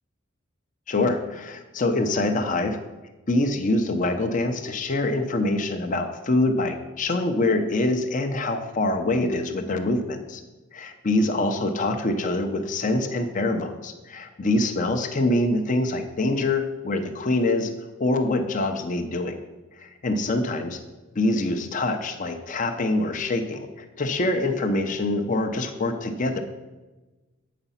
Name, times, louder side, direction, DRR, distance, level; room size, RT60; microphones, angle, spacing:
voice 1, 0.9-2.8 3.3-10.4 10.7-17.7 18.0-19.4 19.8-20.8 21.1-26.4, left 2 dB, 40° left, 6 dB, 0.7 m, -25 dB
8.0 x 5.1 x 5.6 m, 1.2 s
head